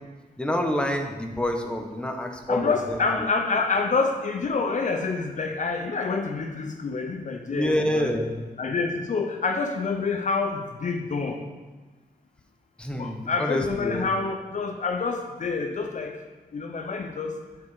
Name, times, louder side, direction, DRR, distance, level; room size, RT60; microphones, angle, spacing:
voice 1, 0.4-3.0 7.5-8.3 12.8-14.1, left 1 dB, 5° left, 3 dB, 0.9 m, -27 dB
voice 2, 2.5-8.1 8.6-11.4 12.9-16.2 16.5-17.4, left 4 dB, 50° left, 4 dB, 0.6 m, -27 dB
8.7 x 4.2 x 4.8 m, 1.3 s
cardioid pair, 80°, 16 cm